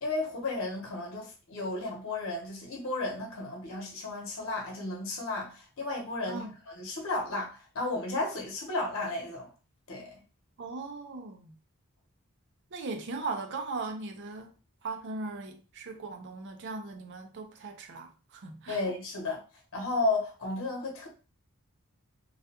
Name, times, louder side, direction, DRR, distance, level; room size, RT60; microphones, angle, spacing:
voice 1, 0.0-9.5 9.9-10.2 18.7-19.4 19.7-21.1, left 2 dB, 65° left, 0.9 m, -33 dB
voice 2, 10.6-11.6 12.7-14.5 14.8-18.8, right 3 dB, 55° right, 0.5 m, -38 dB
2.3 x 2.2 x 2.8 m
head